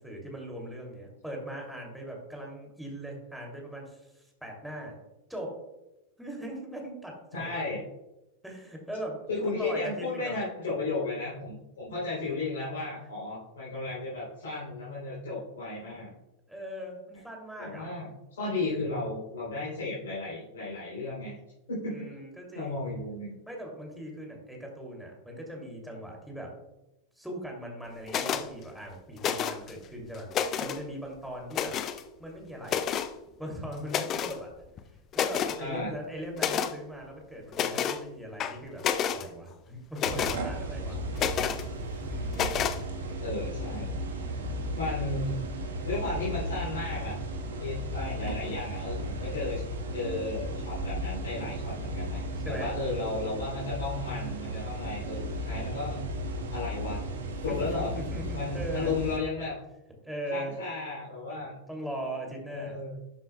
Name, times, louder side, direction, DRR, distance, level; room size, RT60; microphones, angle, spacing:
voice 1, 0.0-5.0 5.3-5.6 6.2-7.5 8.4-10.3 16.5-17.9 21.9-22.8 23.5-26.5 27.2-30.3 30.6-31.8 32.2-32.9 33.4-34.5 35.1-38.8 39.1-41.0 42.0-42.6 44.1-44.8 52.4-52.7 57.5-57.7 57.9-59.0 60.0-60.6 61.3-62.8, right 1 dB, ahead, -1 dB, 2.7 m, -40 dB
voice 2, 7.3-7.8 9.3-16.1 17.6-21.4 21.7-22.1 22.5-23.3 35.6-35.9 43.2-44.0 44.7-45.4 45.8-47.1 47.4-49.6 49.9-56.0 56.5-57.0 57.4-57.9 58.3-59.5 60.3-61.5 62.5-63.0, left 3 dB, 65° left, -8 dB, 3.3 m, -34 dB
sound 1, 28.1-28.5 29.2-29.7 30.1-30.8 31.5-32.0 32.7-33.1 33.9-34.4 34.8-34.9 35.1-35.6 36.4-36.7 37.5-38.0 38.4-39.2 40.0-40.4 41.2-41.6 42.3-42.8, left 8 dB, 30° left, 0.5 m, -29 dB
sound 2, 40.0-59.2, right 1 dB, 65° right, 1.3 m, -35 dB
12.0 x 7.7 x 2.3 m, 0.94 s
figure-of-eight pair, 90°, 0 cm